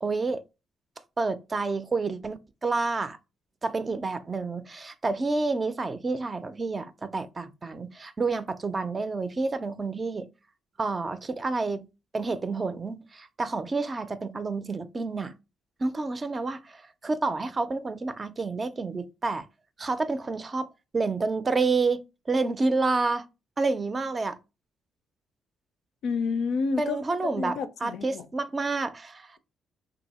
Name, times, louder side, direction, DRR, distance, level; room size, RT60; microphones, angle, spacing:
voice 1, 0.0-0.4 1.2-3.2 3.6-10.3 10.8-11.9 12.1-15.3 15.8-19.4 19.8-20.7 20.9-22.0 22.3-23.2 23.6-24.4 26.8-29.4, right 3 dB, 30° right, 0.4 m, -29 dB
voice 2, 26.0-27.0 27.4-28.3, left 5 dB, 75° left, 0.5 m, -29 dB
2.7 x 2.6 x 4.1 m
cardioid pair, 90°, 0 cm